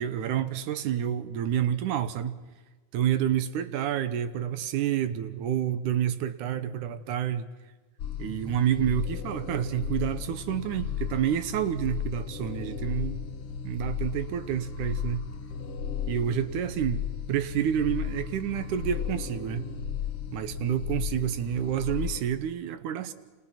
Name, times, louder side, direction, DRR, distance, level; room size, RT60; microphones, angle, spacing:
voice 1, 0.0-2.4 2.9-7.5 8.2-13.3 13.6-15.3 16.1-17.0 17.3-19.6 20.3-23.1, right 10 dB, 80° right, 12 dB, 2.5 m, -29 dB
sound 1, 8.0-22.2, left 8 dB, 55° left, 1.9 m, -35 dB
29.5 x 28.0 x 5.9 m, 1.3 s
omnidirectional pair, 3.6 m